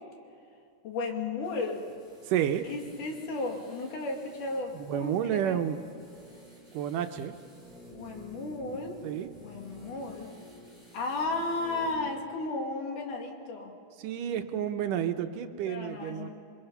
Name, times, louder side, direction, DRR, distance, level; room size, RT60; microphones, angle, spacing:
voice 1, 0.8-1.9 2.6-5.6 7.9-9.0 9.4-10.3 10.9-13.7 15.7-16.3, left 3 dB, 70° left, 2 dB, 3.9 m, -34 dB
sound 1, 1.4-12.1 12.4-12.5, right 1 dB, 10° left, 5.2 m, -51 dB
voice 2, 2.3-2.6 4.7-5.8 6.7-7.3 9.0-9.3 14.0-16.3, right 10 dB, 80° right, 7 dB, 2.5 m, -30 dB
27.5 x 23.0 x 5.6 m, 2.5 s
omnidirectional pair, 3.9 m